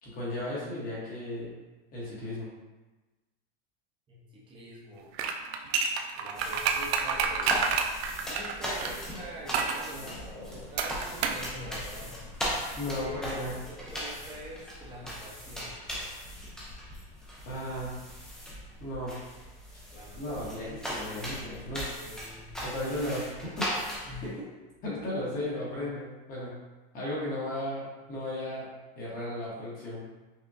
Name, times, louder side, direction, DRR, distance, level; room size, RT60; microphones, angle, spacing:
voice 1, 0.0-1.5 1.9-2.5 9.9-10.7 12.8-13.5 17.5-17.9 18.8-19.1 20.2-22.0 22.6-23.7 24.8-26.5 26.9-28.7 29.0-30.0, left 1 dB, 30° left, -6 dB, 1.0 m, -35 dB
voice 2, 4.1-5.1 6.2-7.7 8.2-12.2 12.9-13.2 13.7-15.8 19.9-20.7 21.9-22.5 23.0-23.1 24.1-24.5, equal, 15° right, -6 dB, 0.8 m, -45 dB
sound 1, 5.1-8.9 9.5-9.8 10.8-11.5 11.7-11.8, right 6 dB, 90° right, 0.5 m, -28 dB
sound 2, 6.3-24.3, equal, ahead, 0.3 m, -38 dB
5.6 x 2.2 x 2.5 m, 1.2 s
supercardioid pair, 160°, 31 cm